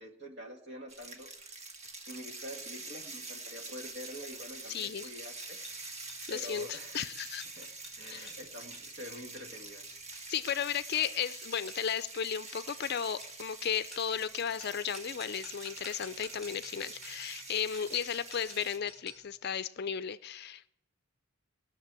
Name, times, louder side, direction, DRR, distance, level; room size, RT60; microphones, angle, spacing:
voice 1, 0.0-5.6 6.3-7.0 7.5-7.7 8.0-9.8, equal, 55° right, 3 dB, 2.2 m, -46 dB
sound 1, 0.9-18.8, right 3 dB, 30° right, 1.4 m, -46 dB
sound 2, 3.9-19.3, equal, ahead, 5.2 m, -53 dB
voice 2, 4.7-5.1 6.3-7.4 8.1-8.3 10.3-20.7, left 8 dB, 50° left, 15 dB, 0.5 m, -34 dB
19.5 x 6.7 x 8.9 m, 0.77 s
head